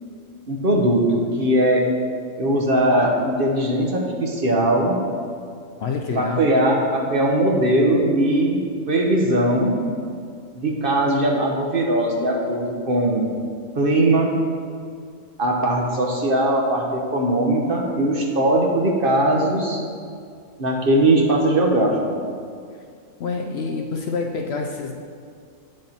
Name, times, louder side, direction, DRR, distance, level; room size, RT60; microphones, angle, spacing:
voice 1, 0.5-1.9 2.4-5.0 6.2-8.6 8.9-9.8 10.5-13.3 13.7-14.4 15.4-19.8 20.6-22.2, right 1 dB, 45° right, -1 dB, 1.1 m, -20 dB
voice 2, 5.8-6.4 23.2-25.0, left 4 dB, 60° left, 3 dB, 0.7 m, -27 dB
8.5 x 6.6 x 4.3 m, 2.3 s
omnidirectional pair, 1.4 m